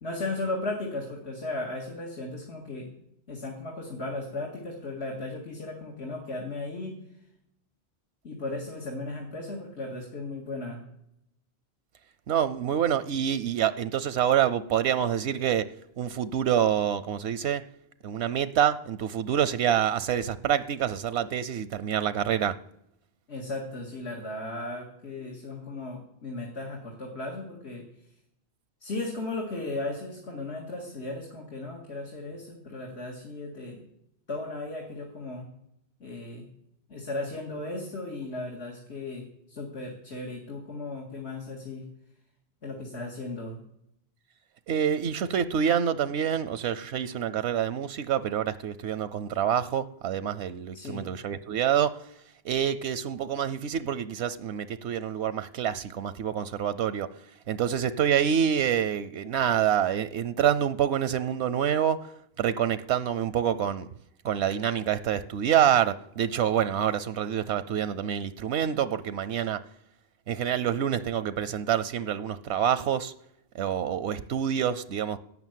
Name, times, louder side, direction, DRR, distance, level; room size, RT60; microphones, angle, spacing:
voice 1, 0.0-2.9 3.3-6.9 8.2-10.8 23.3-27.9 28.8-33.8 34.3-35.5 36.0-36.5 36.9-41.8 42.6-43.6 50.7-51.1, left 2 dB, 85° left, 2.3 m, -36 dB
voice 2, 12.3-15.7 16.0-17.6 18.0-22.6 44.7-52.0 52.4-57.1 57.5-62.1 62.4-63.9 64.2-69.6 70.3-73.1 73.5-75.2, right 9 dB, 85° right, 0.9 m, -27 dB
12.0 x 7.0 x 9.1 m
omnidirectional pair, 1.1 m